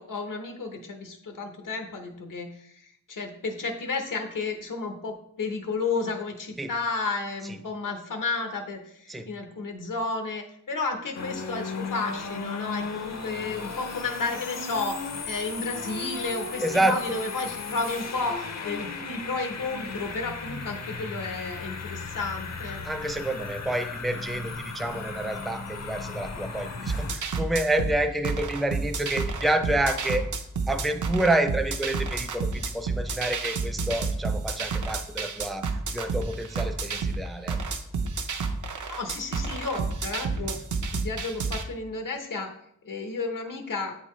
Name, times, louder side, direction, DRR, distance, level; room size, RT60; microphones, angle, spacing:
voice 1, 0.0-22.8 38.9-40.6 40.9-42.5 42.8-44.0, left 3 dB, 85° left, 4 dB, 0.9 m, -32 dB
sound 1, 11.1-27.1, left 4 dB, 55° left, 0.6 m, -36 dB
voice 2, 16.6-17.0 22.8-30.2 30.7-37.6 40.4-40.5, right 1 dB, ahead, 7 dB, 0.4 m, -28 dB
sound 2, 26.9-41.6, right 4 dB, 70° right, 0.6 m, -30 dB
8.0 x 4.0 x 3.1 m, 0.71 s
wide cardioid pair, 100°, 31 cm